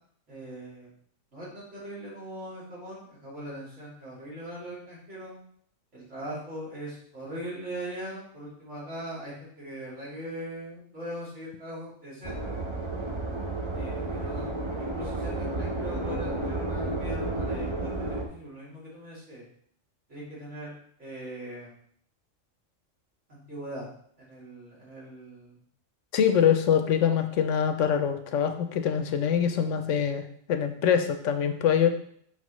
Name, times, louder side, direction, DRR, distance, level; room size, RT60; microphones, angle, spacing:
voice 1, 0.3-0.9 1.3-5.4 5.9-12.6 13.7-14.5 14.8-19.5 20.1-20.7 21.0-21.7 23.3-23.9 24.2-25.6, right 1 dB, 60° right, -7 dB, 3.2 m, -40 dB
sound 1, 12.2-18.2, right 2 dB, 25° right, 0.7 m, -31 dB
voice 2, 26.1-31.9, left 8 dB, 70° left, 7 dB, 1.0 m, -24 dB
5.9 x 5.9 x 3.1 m, 0.64 s
omnidirectional pair, 1.3 m